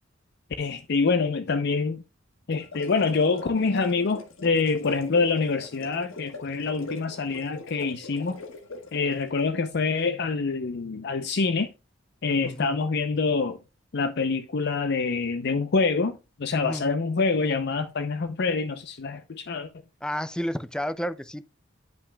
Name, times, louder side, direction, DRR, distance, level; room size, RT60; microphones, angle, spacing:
voice 1, 0.6-2.0 2.5-8.4 8.9-11.7 12.2-13.6 13.9-19.7, left 4 dB, 60° left, 0.5 m, -26 dB
sound 1, 2.5-9.3, left 2 dB, 85° left, 1.3 m, -42 dB
voice 2, 12.4-12.8 16.6-16.9 20.0-21.5, equal, 5° left, 0.4 m, -31 dB
10.5 x 5.7 x 2.2 m
head